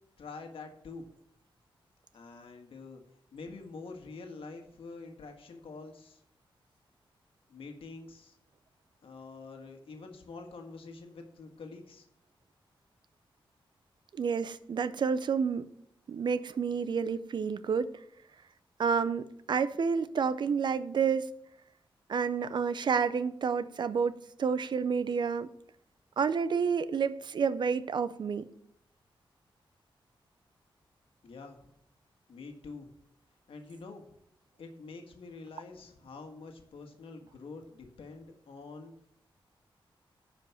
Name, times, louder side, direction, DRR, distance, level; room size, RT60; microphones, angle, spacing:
voice 1, 0.2-1.1 2.1-3.0 3.3-6.2 7.5-8.4 9.0-12.0 31.2-31.7 32.3-32.9 33.5-34.0 34.6-38.9, left 4 dB, 90° left, 4 dB, 1.6 m, -46 dB
voice 2, 14.1-15.7 16.1-17.9 18.8-21.3 22.1-25.5 26.2-28.5, right 6 dB, 55° right, 14 dB, 0.5 m, -29 dB
10.5 x 5.1 x 7.0 m, 0.72 s
wide cardioid pair, 155°, 9 cm